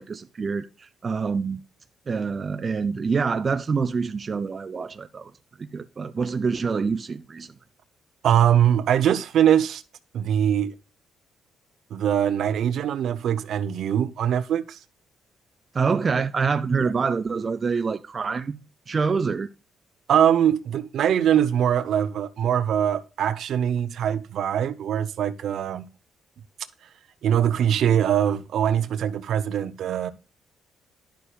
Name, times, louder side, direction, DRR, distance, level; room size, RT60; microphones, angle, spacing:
voice 1, 0.0-1.6 2.1-5.3 5.6-7.5 15.7-18.6 18.9-19.5, right 5 dB, 35° right, 0.4 m, -26 dB
voice 2, 8.2-9.8 10.1-10.7 11.9-14.8 16.8-16.9 20.1-25.9 27.2-30.1, right 9 dB, 70° right, 0.7 m, -22 dB
10.5 x 6.8 x 2.3 m
cardioid pair, 90°, 0 cm